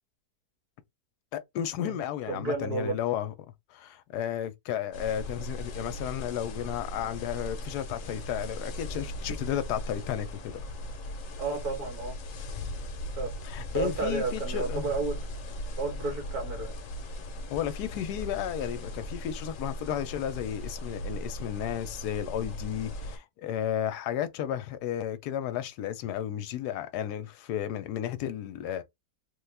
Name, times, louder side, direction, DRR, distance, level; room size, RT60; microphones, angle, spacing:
voice 1, 1.3-3.3 3.7-10.6 13.4-14.9 17.5-28.8, left 10 dB, 85° left, 1.1 m, -33 dB
voice 2, 2.3-3.0 11.4-12.2 13.1-13.3 13.7-15.2 15.8-16.8, right 3 dB, 70° right, 1.8 m, -32 dB
sound 1, 4.9-23.2, left 1 dB, 60° left, 1.0 m, -38 dB
3.4 x 2.3 x 3.2 m
omnidirectional pair, 1.7 m